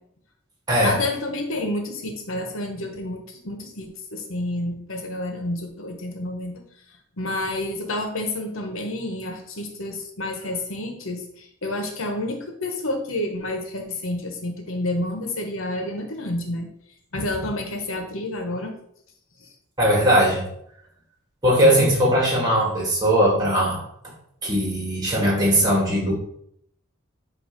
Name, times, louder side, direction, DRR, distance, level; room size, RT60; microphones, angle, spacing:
voice 1, 0.8-6.6 7.2-16.7 17.1-18.7 19.4-19.5, left 1 dB, 75° left, 3 dB, 1.2 m, -29 dB
voice 2, 19.8-20.4 21.4-23.8 24.4-26.1, equal, 20° right, -3 dB, 2.1 m, -19 dB
8.0 x 2.9 x 5.3 m, 0.70 s
head